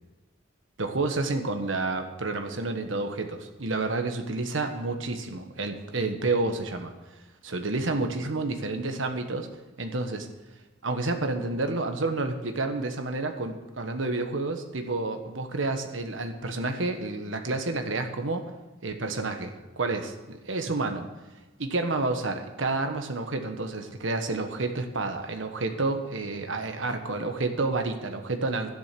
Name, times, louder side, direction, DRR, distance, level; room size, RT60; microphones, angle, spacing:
voice 1, 0.8-6.9 7.4-9.5 9.8-10.3 10.8-18.5 18.8-21.1 21.6-28.7, right 3 dB, 85° right, 6 dB, 1.4 m, -29 dB
12.0 x 10.5 x 6.0 m, 1.2 s
head